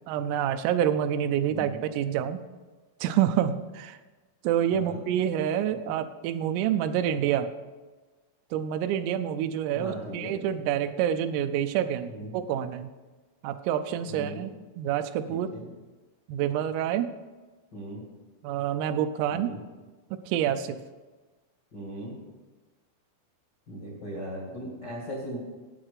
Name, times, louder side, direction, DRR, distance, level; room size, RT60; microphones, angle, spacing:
voice 1, 0.1-2.4 3.0-4.0 4.4-7.5 8.5-12.9 13.4-14.5 14.8-15.5 16.3-17.1 18.4-19.5 20.3-20.8, right 10 dB, 85° right, 9 dB, 3.3 m, -27 dB
voice 2, 1.5-1.8 4.7-5.0 9.7-10.3 12.1-12.3 14.1-14.4 15.3-15.7 17.7-18.0 19.3-19.6 21.7-22.2 23.7-25.4, right 1 dB, 80° left, -4 dB, 0.9 m, -38 dB
9.1 x 8.8 x 6.7 m, 1.3 s
omnidirectional pair, 5.8 m